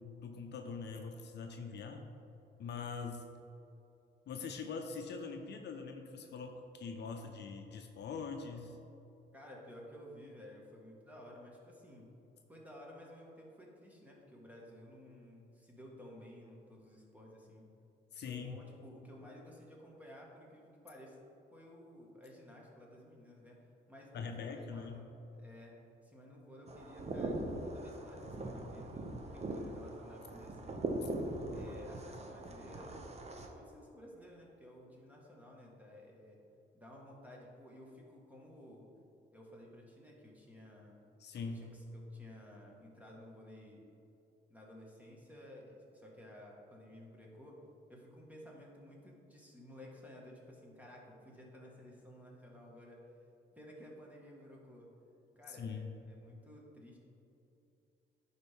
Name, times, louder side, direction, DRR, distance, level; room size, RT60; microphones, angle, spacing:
voice 1, 0.0-2.1 2.6-3.2 4.3-8.8 18.1-18.6 24.1-24.9 31.0-31.1 41.2-41.6 55.5-55.9, left 5 dB, 60° left, 4 dB, 0.6 m, -43 dB
voice 2, 9.3-12.1 12.5-17.7 18.3-21.2 21.5-23.6 23.9-25.1 25.4-30.8 31.5-33.0 33.3-36.4 36.7-38.9 39.3-41.0 41.4-43.9 44.5-47.6 47.9-53.0 53.5-54.9 55.3-57.0, left 1 dB, 10° right, -2 dB, 1.6 m, -54 dB
sound 1, 26.7-33.5, right 2 dB, 30° right, 0.8 m, -41 dB
10.5 x 4.4 x 3.6 m, 2.8 s
cardioid pair, 90°, 20 cm